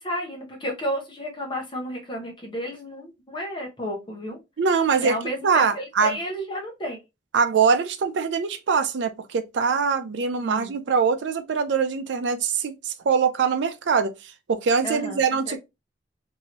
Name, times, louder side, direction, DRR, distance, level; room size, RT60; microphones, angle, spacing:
voice 1, 0.0-4.4 5.0-7.0 10.4-10.7 14.8-15.6, equal, 25° left, 0.9 m, -32 dB
voice 2, 4.6-5.2 5.4-6.2 7.3-15.6, right 5 dB, 80° right, 0.4 m, -23 dB
3.0 x 2.7 x 2.8 m
head